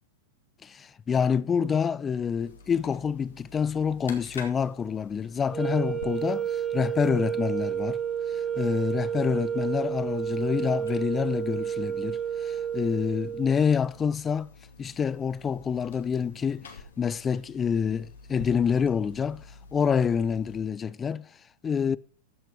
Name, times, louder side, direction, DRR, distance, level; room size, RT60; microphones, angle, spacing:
voice 1, 0.6-8.0 8.3-14.5 14.8-19.5 19.7-21.3 21.6-22.0, left 7 dB, 20° left, 0.5 m, -27 dB
sound 1, 2.4-20.6, left 4 dB, 80° left, 2.3 m, -49 dB
sound 2, 5.5-13.7, right 8 dB, 20° right, 1.5 m, -30 dB
14.5 x 5.9 x 5.1 m
hypercardioid pair, 105°, 0 cm